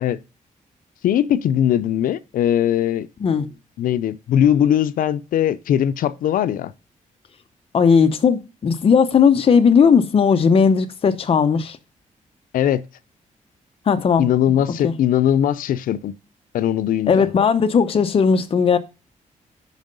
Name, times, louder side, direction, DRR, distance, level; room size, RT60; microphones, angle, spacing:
voice 1, 1.0-3.1 3.8-6.7 12.5-12.8 14.2-16.1 16.5-17.3, left 10 dB, 85° left, 0.5 m, -20 dB
voice 2, 7.7-11.8 13.9-14.2 14.8-14.9 17.1-18.8, left 6 dB, 45° left, 0.8 m, -16 dB
9.2 x 5.4 x 5.2 m
cardioid pair, 125°, 14 cm